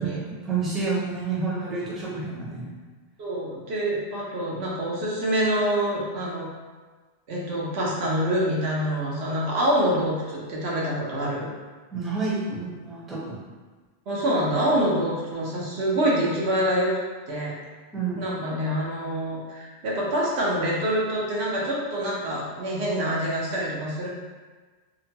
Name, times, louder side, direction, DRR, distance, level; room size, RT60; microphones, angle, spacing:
voice 1, 0.0-2.7 11.9-13.4 17.9-18.2, right 4 dB, ahead, -8 dB, 0.5 m, -29 dB
voice 2, 3.2-6.4 7.3-11.5 14.1-16.9 17.3-17.5 18.2-24.1, equal, 85° right, -4 dB, 1.0 m, -26 dB
2.9 x 2.1 x 2.8 m, 1.4 s
omnidirectional pair, 1.1 m